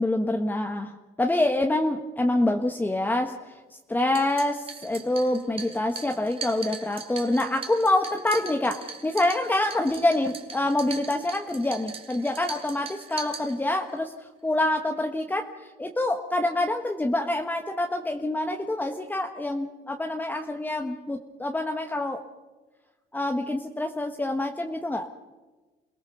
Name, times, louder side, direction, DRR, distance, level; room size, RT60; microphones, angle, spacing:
voice 1, 0.0-3.6 3.9-22.2 23.1-25.1, left 1 dB, 10° left, 4 dB, 1.5 m, -26 dB
sound 1, 4.0-14.0, right 5 dB, 35° right, 3.0 m, -40 dB
28.5 x 18.0 x 6.9 m, 1.2 s
cardioid pair, 110°, 17 cm